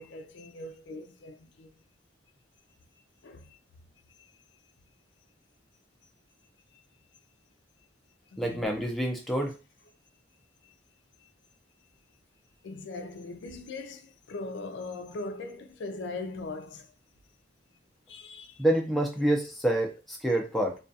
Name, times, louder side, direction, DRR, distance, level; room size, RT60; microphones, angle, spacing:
voice 1, 0.0-1.7 3.2-3.6 4.2-4.3 8.3-8.7 10.6-10.7 11.2-11.3 12.6-16.9 18.1-18.6, left 3 dB, 75° left, 0.4 m, -40 dB
voice 2, 8.4-9.6 18.6-20.8, right 1 dB, ahead, 0.4 m, -27 dB
2.3 x 2.3 x 2.6 m
head